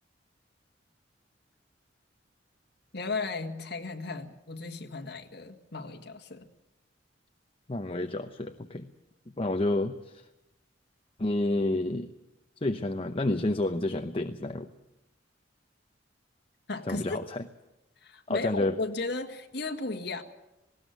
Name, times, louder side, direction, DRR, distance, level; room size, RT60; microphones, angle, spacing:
voice 1, 2.9-6.5 16.7-17.2 18.0-20.2, left 3 dB, 60° left, 4 dB, 1.9 m, -35 dB
voice 2, 7.7-8.9 9.4-10.3 11.2-12.1 12.6-14.7 16.8-17.5 18.3-18.7, left 2 dB, 30° left, 7 dB, 0.8 m, -29 dB
19.5 x 17.0 x 9.3 m, 0.94 s
head